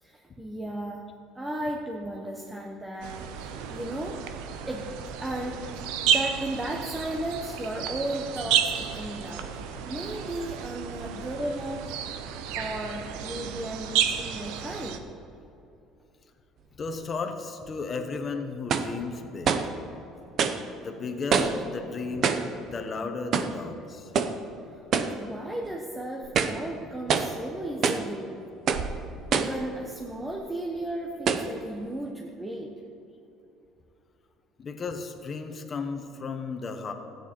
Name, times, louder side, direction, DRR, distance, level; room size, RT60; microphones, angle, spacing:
voice 1, 0.0-4.2 4.7-4.9 5.2-12.0 12.5-15.1 25.0-28.4 29.3-32.7, right 1 dB, 10° right, 0 dB, 1.0 m, -35 dB
sound 1, 3.0-15.0, right 8 dB, 85° right, 0.8 m, -31 dB
voice 2, 16.8-19.5 20.8-24.1 34.6-36.9, left 4 dB, 30° left, 5 dB, 1.2 m, -34 dB
sound 2, 17.7-17.8 18.7-19.0 19.4-19.8 20.4-20.6 21.3-21.7 22.2-22.5 23.3-23.6 24.1-24.4 24.9-25.2 25.6-25.7 26.2-26.6 27.1-27.4 27.8-28.1 28.7-28.9 29.3-29.6 30.3-30.4 31.3-31.5, right 6 dB, 50° right, 0.8 m, -26 dB
14.0 x 9.3 x 4.5 m, 2.8 s
cardioid pair, 110°, 0 cm